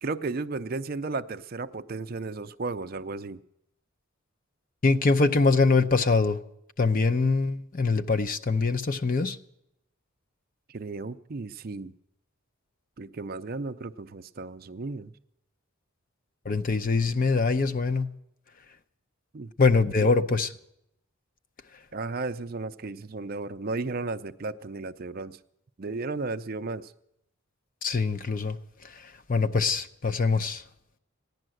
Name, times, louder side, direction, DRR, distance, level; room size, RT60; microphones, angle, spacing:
voice 1, 0.0-3.4 10.7-11.9 13.0-15.1 19.3-19.5 20.0-20.1 21.9-25.4 25.8-26.9, right 3 dB, 45° right, 0.5 m, -34 dB
voice 2, 4.8-6.4 6.8-9.4 16.5-18.1 19.6-20.5 27.8-28.6 28.9-30.6, left 4 dB, 40° left, 0.6 m, -23 dB
15.5 x 10.5 x 7.7 m
head